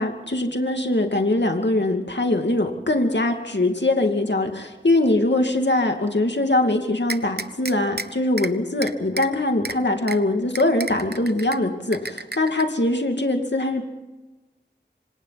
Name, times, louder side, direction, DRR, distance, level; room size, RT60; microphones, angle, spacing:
voice 1, 0.0-13.8, left 2 dB, 65° left, 4 dB, 2.5 m, -22 dB
sound 1, 7.1-8.1 8.4-8.5 8.8-9.3 9.7-9.8 10.1-10.2 10.6-11.6 11.9-12.6, right 3 dB, 60° right, 1.0 m, -30 dB
28.0 x 25.5 x 4.2 m, 1.1 s
wide cardioid pair, 45°, 19 cm